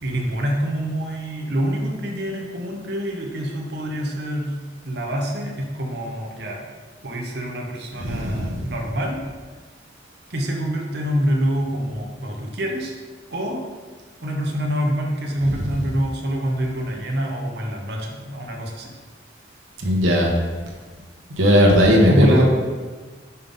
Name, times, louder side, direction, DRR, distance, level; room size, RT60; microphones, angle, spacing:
voice 1, 0.0-4.6 4.8-6.7 7.0-9.2 10.3-13.0 13.3-13.6 14.2-18.9 21.8-22.4, equal, 55° right, 0 dB, 0.9 m, -26 dB
voice 2, 8.0-8.6 19.8-20.3 21.4-22.4, equal, 85° right, -1 dB, 1.2 m, -17 dB
5.5 x 5.5 x 3.7 m, 1.4 s
head